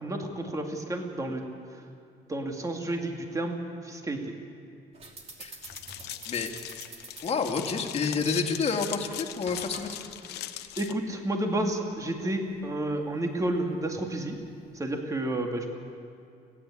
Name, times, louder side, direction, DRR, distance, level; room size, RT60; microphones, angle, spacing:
voice 1, 0.0-1.4 2.3-3.6 3.8-4.3 10.8-14.4 14.7-15.7, right 1 dB, 20° right, 3 dB, 2.2 m, -31 dB
sound 1, 4.9-15.0, right 3 dB, 40° right, 2.9 m, -50 dB
sound 2, 5.6-10.9, left 13 dB, 80° left, 0.9 m, -40 dB
voice 2, 7.2-10.0 10.5-10.6, left 5 dB, 35° left, 2 dB, 2.2 m, -29 dB
30.0 x 10.5 x 8.6 m, 2.4 s
cardioid pair, 110°, 17 cm